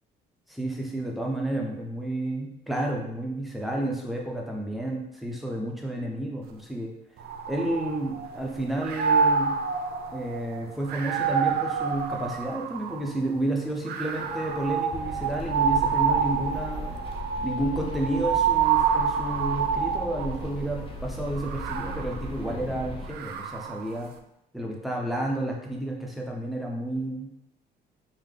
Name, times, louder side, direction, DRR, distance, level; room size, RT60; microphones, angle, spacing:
voice 1, 0.5-6.9 7.5-9.6 10.1-16.9 17.4-24.1 24.5-27.3, right 1 dB, ahead, -1 dB, 0.8 m, -31 dB
sound 1, 7.2-8.4 8.8-13.2 13.9-20.5 21.3-23.9, right 6 dB, 70° right, 0.4 m, -27 dB
sound 2, 14.9-23.1, left 1 dB, 35° left, 0.6 m, -37 dB
3.6 x 2.7 x 3.7 m, 0.81 s
cardioid pair, 110°, 17 cm